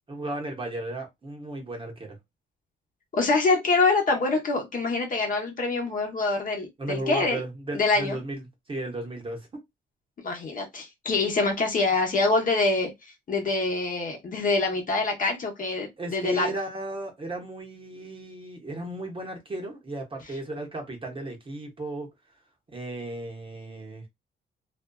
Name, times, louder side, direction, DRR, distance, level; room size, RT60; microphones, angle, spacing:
voice 1, 0.1-2.2 6.8-9.5 16.0-22.1 22.7-24.0, right 2 dB, 25° right, 0.9 m, -35 dB
voice 2, 3.1-7.4 7.7-8.2 10.2-12.9 13.3-16.5, left 3 dB, 40° left, 0.9 m, -25 dB
2.6 x 2.3 x 2.2 m
cardioid pair, 90°, 20 cm